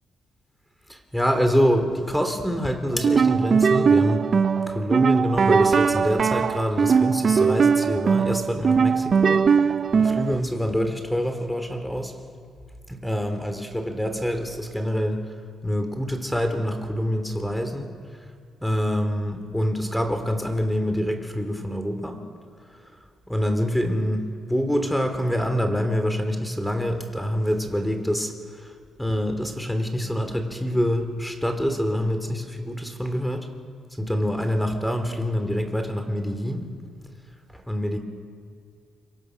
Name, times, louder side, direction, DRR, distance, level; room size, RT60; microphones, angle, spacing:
voice 1, 0.9-4.3 4.7-12.1 12.9-15.2 15.6-17.9 18.6-22.2 23.3-33.5 34.0-36.7 37.5-38.0, equal, 5° left, 7 dB, 3.2 m, -26 dB
sound 1, 2.9-10.4, right 6 dB, 45° right, 0.5 m, -20 dB
26.5 x 24.0 x 6.2 m, 2.2 s
cardioid pair, 90°, 0 cm